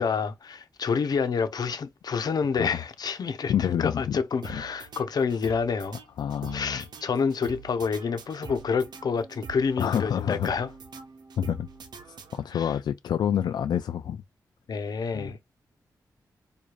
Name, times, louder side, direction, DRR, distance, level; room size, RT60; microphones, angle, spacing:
voice 1, 0.0-6.0 6.5-10.7 12.5-12.8 14.7-15.4, left 5 dB, 70° left, 0.9 m, -28 dB
voice 2, 3.5-4.2 4.5-4.6 6.2-6.8 9.8-10.5 11.4-11.7 12.3-14.2 15.1-15.4, left 9 dB, 85° left, 0.3 m, -27 dB
sound 1, 4.4-12.8, right 5 dB, 90° right, 0.9 m, -45 dB
4.8 x 2.6 x 2.5 m
wide cardioid pair, 85°, 7 cm